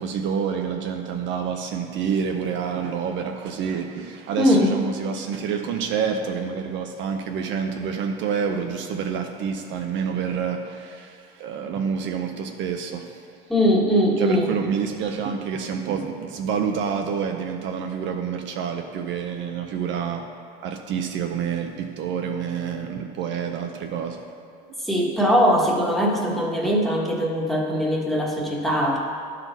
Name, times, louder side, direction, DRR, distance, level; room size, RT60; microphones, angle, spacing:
voice 1, 0.0-13.2 14.2-20.3 20.6-24.2 24.7-24.8 26.6-26.7, right 7 dB, 60° right, 4 dB, 0.7 m, -28 dB
voice 2, 4.4-4.7 13.5-14.5 24.8-29.0, equal, ahead, -3 dB, 1.3 m, -21 dB
11.5 x 4.1 x 4.0 m, 2.4 s
supercardioid pair, 105°, 21 cm